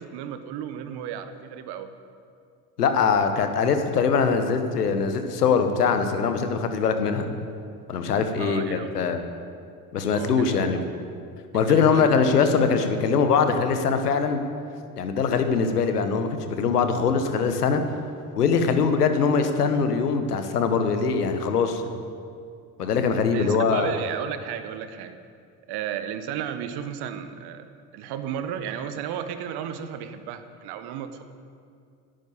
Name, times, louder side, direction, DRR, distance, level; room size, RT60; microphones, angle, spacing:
voice 1, 0.0-1.9 8.4-8.9 10.1-10.7 11.5-12.1 23.3-25.2 25.7-27.7 27.9-31.2, right 9 dB, 55° right, 10 dB, 1.2 m, -34 dB
voice 2, 2.8-7.3 7.9-9.2 9.9-10.8 11.5-14.4 15.0-17.8 18.4-21.8 22.8-23.9, left 5 dB, 85° left, 8 dB, 1.1 m, -22 dB
11.0 x 9.2 x 8.1 m, 2.3 s
hypercardioid pair, 65°, 45 cm